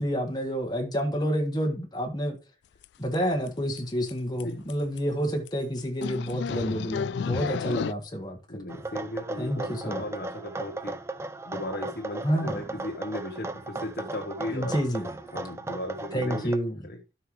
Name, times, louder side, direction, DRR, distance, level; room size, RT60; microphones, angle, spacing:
voice 1, 0.0-2.4 3.0-8.6 9.4-10.0 12.2-12.6 14.5-15.1 16.1-16.7, equal, 25° left, 1.6 m, -29 dB
sound 1, 2.8-2.9 3.1-3.5 3.8-3.9 4.1-4.2 4.4-4.5 4.7-5.0 5.5-5.6 6.0-7.9, left 6 dB, 75° left, 0.3 m, -32 dB
voice 2, 8.5-11.0 11.4-14.8 15.3-16.5 16.8-17.0, left 1 dB, 60° left, 1.2 m, -36 dB
sound 2, 8.7-16.6, right 2 dB, 15° right, 0.5 m, -37 dB
12.5 x 5.7 x 3.2 m
head